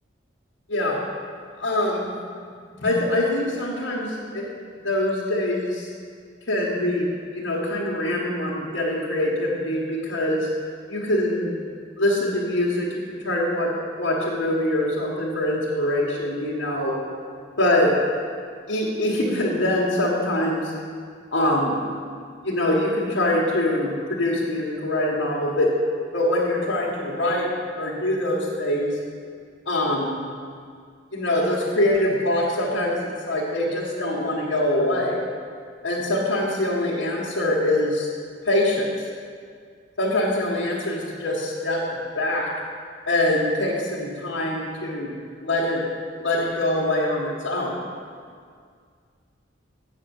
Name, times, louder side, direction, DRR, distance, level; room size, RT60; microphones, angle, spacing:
voice 1, 1.6-2.1 2.8-4.5 4.8-5.9 6.5-10.5 10.9-11.5 12.0-16.9 17.6-17.9 18.7-20.7 21.3-21.8 22.4-25.7 26.1-28.9 29.6-30.2 31.1-35.2 35.8-38.1 38.4-38.9 40.0-42.5 43.1-45.9 46.2-47.7, left 1 dB, 75° left, -7 dB, 1.6 m, -24 dB
8.4 x 6.7 x 7.2 m, 2.1 s
head